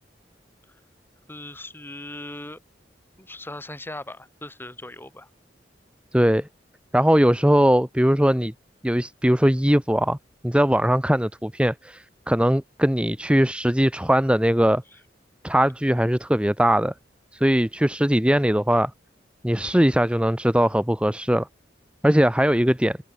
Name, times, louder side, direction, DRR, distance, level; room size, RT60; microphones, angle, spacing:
voice 1, 1.3-2.6 3.2-5.3, left 1 dB, 10° left, 6.3 m, -39 dB
voice 2, 6.1-6.5 6.9-8.5 8.8-10.2 10.4-14.8 15.4-16.9 17.3-18.9 19.4-21.5 22.0-23.0, equal, 5° right, 1.5 m, -20 dB
head